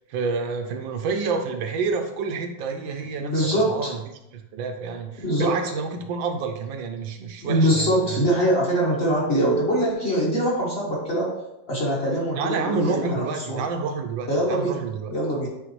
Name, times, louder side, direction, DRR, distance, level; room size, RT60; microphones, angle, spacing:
voice 1, 0.1-4.0 4.3-8.4 12.4-15.1, right 5 dB, 75° right, 5 dB, 1.3 m, -29 dB
voice 2, 3.2-3.9 5.2-5.6 7.4-11.3 11.7-13.7 14.3-14.8 15.1-15.5, equal, 35° left, -5 dB, 1.3 m, -23 dB
9.1 x 3.4 x 3.1 m, 0.89 s
omnidirectional pair, 2.2 m